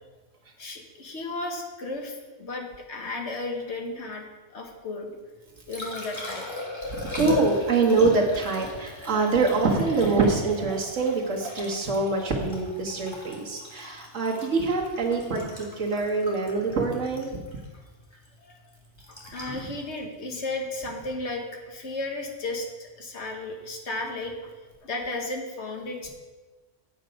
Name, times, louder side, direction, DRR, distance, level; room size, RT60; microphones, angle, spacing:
voice 1, 0.6-4.2 4.5-5.2 5.7-6.5 13.5-13.7 18.4-18.5 19.1-24.5 24.8-26.1, left 2 dB, 65° left, 2 dB, 1.6 m, -34 dB
Liquid, 5.3-21.4 24.2-24.3, left 2 dB, 20° left, 1.9 m, -38 dB
voice 2, 6.9-17.4 19.4-19.5, right 3 dB, 85° right, 0 dB, 1.8 m, -25 dB
8.4 x 8.0 x 5.2 m, 1.3 s
omnidirectional pair, 1.3 m